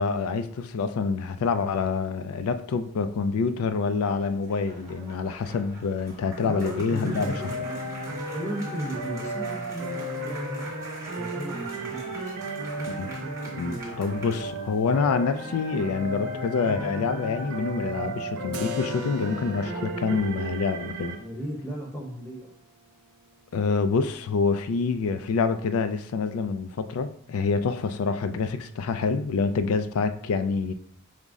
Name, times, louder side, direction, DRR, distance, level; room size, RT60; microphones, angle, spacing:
voice 1, 0.0-7.3 12.9-13.1 13.6-21.2 23.5-30.7, left 4 dB, 75° left, 0.4 m, -27 dB
sound 1, 4.0-14.9, right 1 dB, 15° right, 1.0 m, -45 dB
voice 2, 6.4-10.7 11.1-12.4 21.2-22.5, right 1 dB, 10° left, 0.8 m, -36 dB
sound 2, 7.1-21.2, right 1 dB, 65° right, 0.8 m, -34 dB
Keyboard (musical), 18.5-24.1, equal, 80° right, 0.4 m, -43 dB
5.2 x 2.0 x 3.5 m
head